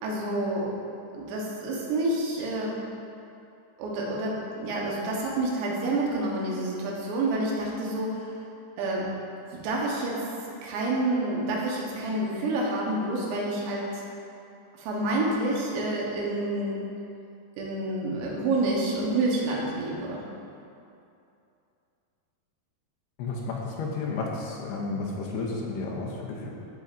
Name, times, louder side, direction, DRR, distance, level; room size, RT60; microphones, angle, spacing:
voice 1, 0.0-0.7 1.1-2.8 3.8-8.3 8.8-9.1 9.5-10.3 10.6-14.0 14.8-16.9 17.6-20.2, right 2 dB, 85° right, -3 dB, 3.4 m, -28 dB
voice 2, 23.2-26.5, left 3 dB, 80° left, -2 dB, 2.6 m, -32 dB
13.5 x 5.3 x 2.6 m, 2.6 s
omnidirectional pair, 4.9 m